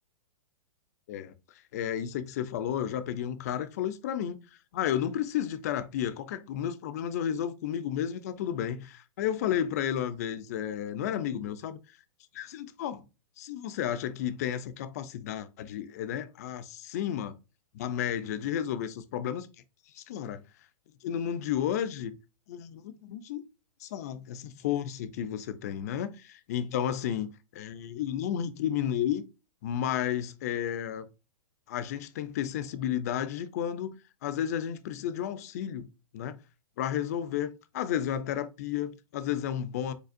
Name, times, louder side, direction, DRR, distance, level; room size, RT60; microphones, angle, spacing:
voice 1, 1.1-11.8 12.3-13.1 13.4-17.4 17.7-19.5 19.9-20.4 21.0-22.2 22.5-23.4 23.8-29.2 29.6-31.1 31.7-33.9 34.2-35.9 36.1-36.4 36.8-39.9, left 10 dB, 30° left, 0.4 m, -32 dB
5.1 x 4.1 x 2.5 m
hypercardioid pair, 165°, 18 cm